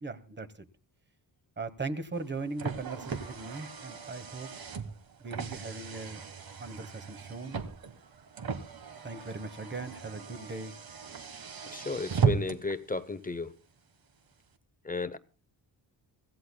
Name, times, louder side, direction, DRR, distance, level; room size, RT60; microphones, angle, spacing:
voice 1, 0.0-0.7 1.6-4.5 5.2-6.2 6.6-7.6 9.0-10.7, right 3 dB, 25° right, 1.1 m, -39 dB
Car, 2.1-12.8, right 6 dB, 50° right, 1.4 m, -36 dB
voice 2, 11.7-13.5 14.8-15.2, left 3 dB, 20° left, 0.7 m, -33 dB
24.5 x 16.0 x 2.2 m
wide cardioid pair, 135°, 45 cm